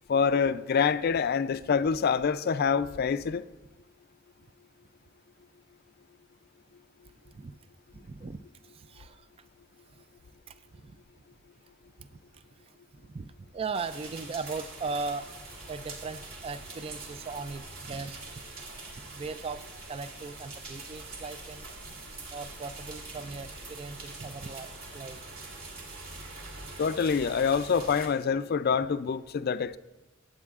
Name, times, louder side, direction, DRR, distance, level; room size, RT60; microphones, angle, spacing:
voice 1, 0.1-3.5 26.8-29.8, left 6 dB, 50° left, 0.4 m, -26 dB
voice 2, 7.9-9.3 10.5-10.6 10.8-11.0 12.0-12.5 13.0-15.4 15.7-18.2 19.1-21.7 22.3-25.2, right 4 dB, 30° right, 0.3 m, -38 dB
sound 1, 13.7-28.1, right 3 dB, 50° right, 2.4 m, -44 dB
24.5 x 8.3 x 2.4 m
head